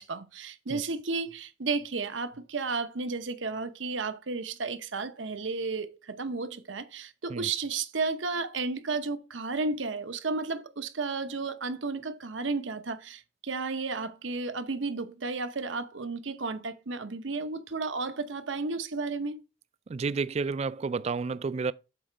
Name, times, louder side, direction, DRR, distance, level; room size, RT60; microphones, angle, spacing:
voice 1, 0.0-19.4, right 4 dB, 80° right, 0.9 m, -33 dB
voice 2, 19.9-21.7, right 4 dB, 35° right, 0.3 m, -30 dB
7.8 x 4.2 x 5.0 m
head